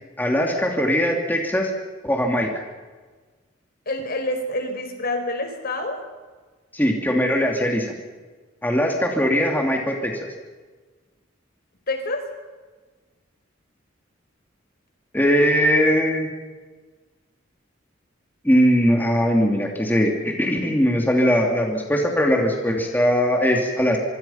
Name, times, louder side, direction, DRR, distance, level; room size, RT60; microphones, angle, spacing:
voice 1, 0.2-1.7 2.0-2.5 6.7-7.9 8.6-10.1 15.1-16.3 18.4-24.0, equal, 10° left, 1 dB, 2.9 m, -20 dB
voice 2, 3.9-6.0 7.6-7.8 11.9-12.3, left 2 dB, 50° left, 6 dB, 4.7 m, -27 dB
25.5 x 25.0 x 5.8 m, 1.4 s
head